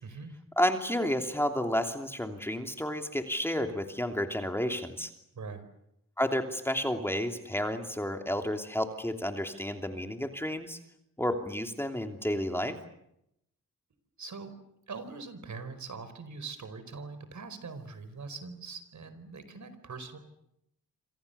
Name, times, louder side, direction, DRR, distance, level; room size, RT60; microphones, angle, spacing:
voice 1, 0.0-0.4 5.3-5.7 14.2-14.5 14.9-20.2, right 4 dB, 60° right, 11 dB, 4.8 m, -42 dB
voice 2, 0.6-5.1 6.2-10.8 11.2-12.8, equal, 5° left, 5 dB, 2.9 m, -31 dB
27.5 x 27.0 x 7.0 m, 0.79 s
cardioid pair, 85°, 33 cm